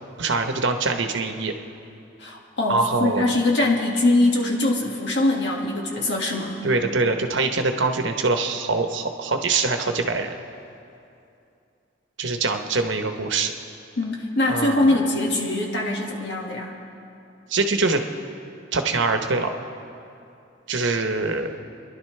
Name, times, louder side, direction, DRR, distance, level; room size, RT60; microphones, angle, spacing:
voice 1, 0.2-1.5 2.7-3.4 6.6-10.3 12.2-13.5 14.5-15.0 17.5-18.0 18.7-19.5 20.7-21.5, right 3 dB, 75° right, 5 dB, 1.0 m, -23 dB
voice 2, 2.2-6.6 14.0-16.7, left 2 dB, 65° left, -1 dB, 1.9 m, -22 dB
28.5 x 11.5 x 3.3 m, 2.6 s
head